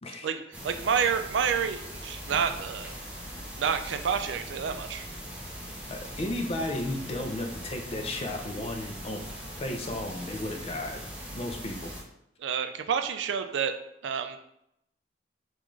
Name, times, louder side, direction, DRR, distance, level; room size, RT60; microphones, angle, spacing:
voice 1, 0.2-2.9 3.6-5.1 12.4-13.7 14.0-14.4, right 7 dB, 75° right, 8 dB, 0.4 m, -29 dB
sound 1, 0.5-12.0, equal, 5° right, 0.7 m, -41 dB
voice 2, 5.9-9.2 9.6-11.0 11.3-11.9, left 1 dB, 35° left, 3 dB, 0.5 m, -34 dB
3.6 x 2.5 x 3.0 m, 0.77 s
head